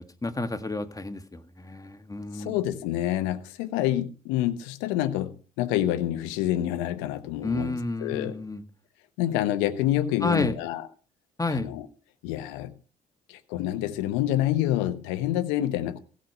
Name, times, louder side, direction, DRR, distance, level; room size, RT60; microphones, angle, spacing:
voice 1, 0.0-2.6 7.4-8.6 10.2-10.5 11.4-11.7, left 2 dB, 20° left, 1.7 m, -30 dB
voice 2, 2.3-8.4 9.2-10.9 11.5-11.9 12.2-12.7 13.3-16.0, left 13 dB, 80° left, 0.9 m, -27 dB
16.5 x 6.4 x 5.4 m
hypercardioid pair, 45°, 19 cm